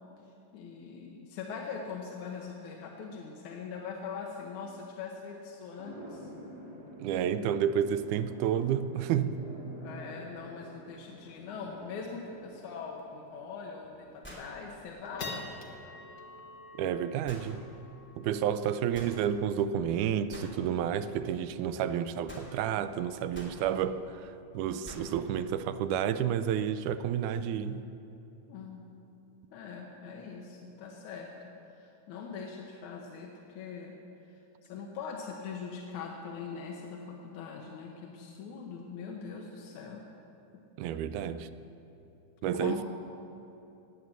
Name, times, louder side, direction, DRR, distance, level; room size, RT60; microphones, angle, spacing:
voice 1, 0.3-6.3 9.8-15.5 28.5-28.8 29.5-34.0 34.3-40.0 42.5-42.8, left 5 dB, 70° left, 0 dB, 2.5 m, -42 dB
sound 1, 5.8-16.2, equal, 35° right, 3.6 m, -50 dB
voice 2, 7.0-9.4 16.8-17.6 18.2-27.8 40.8-41.5 42.4-42.8, right 9 dB, 80° right, 12 dB, 2.0 m, -30 dB
sound 2, 12.0-12.1 12.5-12.8 13.3-13.4 13.9-14.3 14.7-21.3, left 3 dB, 55° left, 0.9 m, -48 dB
sound 3, 13.0-13.1 14.2-14.6 17.3-17.5 18.9-19.2 20.3-20.5 22.3-22.5 23.3-23.6 24.8-25.1, equal, 5° left, 2.1 m, -46 dB
17.5 x 9.4 x 7.3 m, 2.9 s
omnidirectional pair, 3.6 m